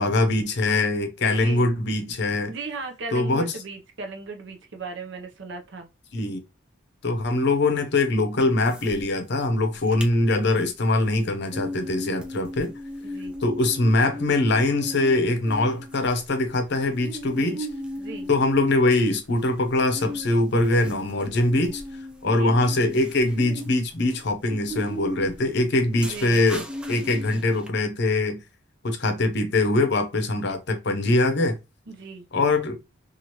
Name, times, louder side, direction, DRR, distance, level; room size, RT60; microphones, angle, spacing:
voice 1, 0.0-2.5 3.1-3.5 6.1-6.4 7.0-12.7 13.4-17.7 18.3-21.8 22.2-26.6 26.9-28.4 28.8-31.6 32.3-32.8, left 2 dB, 55° left, 0.6 m, -22 dB
voice 2, 1.2-1.7 2.5-5.9 9.8-10.1 13.0-13.3 17.4-17.6 18.0-18.3 22.2-22.6 26.0-26.4 31.9-32.3, right 3 dB, 60° right, 0.6 m, -37 dB
sound 1, 8.4-9.0 9.3-9.4 9.7-10.1 10.5-27.7, equal, 5° right, 0.4 m, -37 dB
2.9 x 2.4 x 2.8 m
head